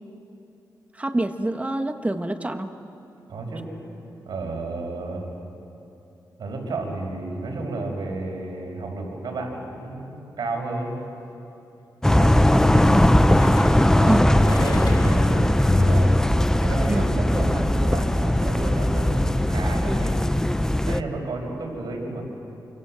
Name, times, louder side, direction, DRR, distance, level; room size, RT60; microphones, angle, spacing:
voice 1, 0.9-2.7 14.0-14.3 16.9-17.0, right 1 dB, 20° right, 6 dB, 1.6 m, -25 dB
voice 2, 3.3-3.6 4.2-5.3 6.4-11.0 12.1-13.3 13.9-16.2 16.6-20.2 20.9-22.2, right 2 dB, 80° right, 1 dB, 5.6 m, -31 dB
sound 1, 10.8-11.0 13.4-15.3 15.7-15.8, left 4 dB, 75° left, 3.8 m, -40 dB
sound 2, 12.0-21.0, left 1 dB, 5° left, 0.8 m, -19 dB
28.5 x 25.5 x 7.7 m, 2.8 s
cardioid pair, 75°, 7 cm